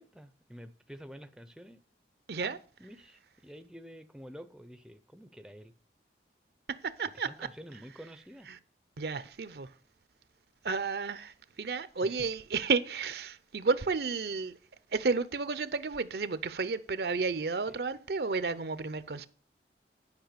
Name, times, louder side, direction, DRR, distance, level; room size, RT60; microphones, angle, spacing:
voice 1, 0.0-1.8 2.4-5.7 7.1-8.5 12.0-12.3 17.7-17.8, equal, 5° right, 0.5 m, -49 dB
voice 2, 6.7-7.3 8.5-8.6 9.0-9.7 10.6-14.6 14.9-19.3, right 4 dB, 65° right, 0.6 m, -32 dB
10.5 x 5.5 x 6.7 m
head